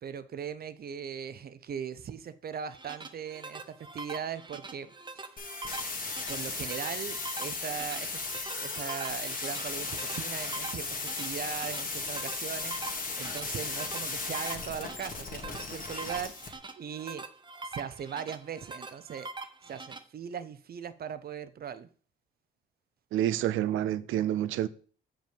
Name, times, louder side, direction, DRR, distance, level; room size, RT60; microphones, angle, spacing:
voice 1, 0.0-5.3 6.3-17.2 17.6-19.3 19.6-21.9, right 8 dB, 50° right, 0.7 m, -39 dB
sound 1, 2.5-20.0, right 3 dB, 25° right, 0.9 m, -44 dB
sound 2, 5.4-16.5, left 3 dB, 45° left, 2.1 m, -36 dB
voice 2, 23.1-24.7, right 12 dB, 85° right, 0.6 m, -28 dB
7.4 x 5.4 x 5.1 m
cardioid pair, 90°, 20 cm